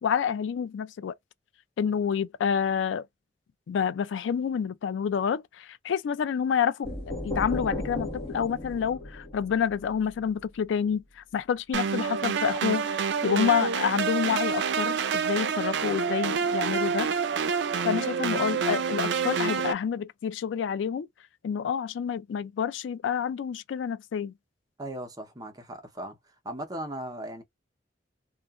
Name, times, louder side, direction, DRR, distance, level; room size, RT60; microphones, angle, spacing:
voice 1, 0.0-1.1 1.8-3.1 3.7-6.9 7.2-12.9 13.2-17.1 17.8-21.1 21.4-24.3, left 7 dB, 85° left, 0.3 m, -28 dB
sound 1, 6.8-10.6, left 1 dB, 30° left, 1.1 m, -35 dB
sound 2, 11.7-19.7, right 6 dB, 70° right, 0.4 m, -27 dB
voice 2, 24.8-26.2 26.4-27.4, right 1 dB, 20° right, 0.7 m, -37 dB
2.8 x 2.4 x 2.3 m
head